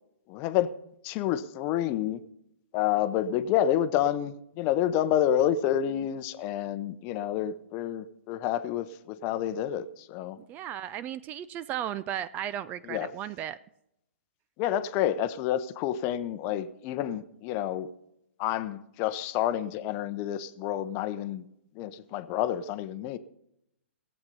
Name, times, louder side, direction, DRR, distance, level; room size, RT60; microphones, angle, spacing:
voice 1, 0.3-0.7 1.0-2.2 2.7-10.4 12.8-13.1 14.6-17.9 18.4-21.4 21.8-23.2, left 11 dB, 30° left, 13 dB, 0.7 m, -29 dB
voice 2, 10.5-13.6, right 11 dB, 25° right, 17 dB, 0.4 m, -35 dB
17.0 x 8.2 x 5.5 m, 0.80 s
figure-of-eight pair, 120°, 7 cm